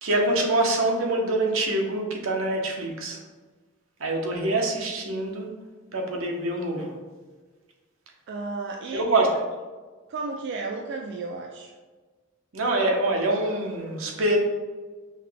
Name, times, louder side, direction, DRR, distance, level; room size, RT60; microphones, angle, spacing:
voice 1, 0.0-3.2 4.0-5.5 5.9-7.0 8.9-9.4 12.5-14.4, right 2 dB, 85° right, 1 dB, 0.8 m, -25 dB
voice 2, 8.3-9.3 10.1-11.7, right 3 dB, 55° right, 2 dB, 0.3 m, -33 dB
5.6 x 2.2 x 3.3 m, 1.3 s
head